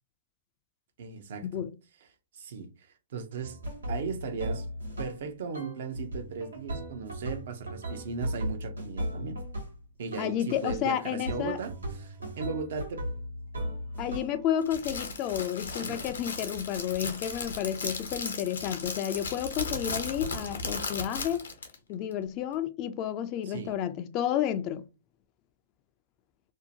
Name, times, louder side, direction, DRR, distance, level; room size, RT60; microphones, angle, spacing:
voice 1, 1.0-1.6 2.3-2.7 3.1-3.6 3.9-4.7 5.0-9.4 10.0-11.7 12.0-13.1 15.8-16.0 23.5-23.8, right 5 dB, 65° right, 0.6 m, -37 dB
sound 1, 3.4-5.3 5.5-9.8 10.1-10.8 11.3-14.4, equal, 90° right, 1.1 m, -37 dB
voice 2, 10.2-11.6 14.0-21.5 21.9-24.9, left 10 dB, 40° left, 0.3 m, -31 dB
Crackle, 14.6-21.8, left 3 dB, 85° left, 0.7 m, -36 dB
2.7 x 2.1 x 2.7 m
hypercardioid pair, 120°, 0 cm